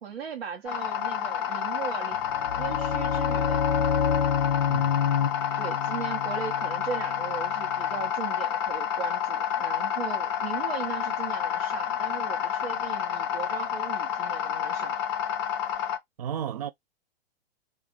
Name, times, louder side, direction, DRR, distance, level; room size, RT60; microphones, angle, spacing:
voice 1, 0.0-2.2 2.6-3.6 5.6-15.0, right 7 dB, 70° right, 0.7 m, -38 dB
sound 1, 0.7-16.0, left 9 dB, 25° left, 0.4 m, -29 dB
sound 2, 2.2-8.0, left 7 dB, 75° left, 0.5 m, -28 dB
voice 2, 4.7-5.0 16.2-16.7, right 9 dB, 40° right, 0.4 m, -33 dB
2.4 x 2.1 x 3.5 m
figure-of-eight pair, 110°, 31 cm